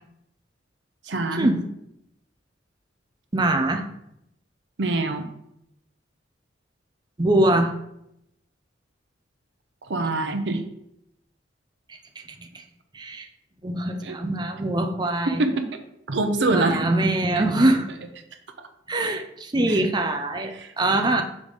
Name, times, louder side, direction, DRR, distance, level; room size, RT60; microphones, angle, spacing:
voice 1, 1.1-1.5 4.8-5.3 9.9-10.6 14.0-14.2 15.3-15.6 16.1-16.9 17.4-17.5 19.7-19.8 20.5-20.7, right 2 dB, 70° right, 6 dB, 0.7 m, -24 dB
voice 2, 3.3-3.9 7.2-7.7 12.4-12.6 12.9-13.3 13.6-15.4 16.5-18.0 18.9-21.2, right 1 dB, 25° right, 5 dB, 0.5 m, -23 dB
5.2 x 4.9 x 4.0 m, 0.80 s
head